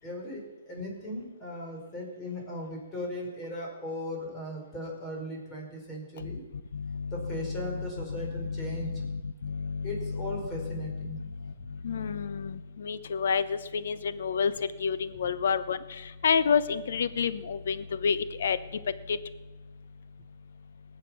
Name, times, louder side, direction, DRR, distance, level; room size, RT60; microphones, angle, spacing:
voice 1, 0.0-6.4 7.1-8.9 9.8-11.2, left 1 dB, 20° left, -1 dB, 4.6 m, -38 dB
voice 2, 6.7-19.2, left 6 dB, 70° left, 14 dB, 0.8 m, -30 dB
19.5 x 7.5 x 6.1 m, 1.2 s
hypercardioid pair, 150°, 0 cm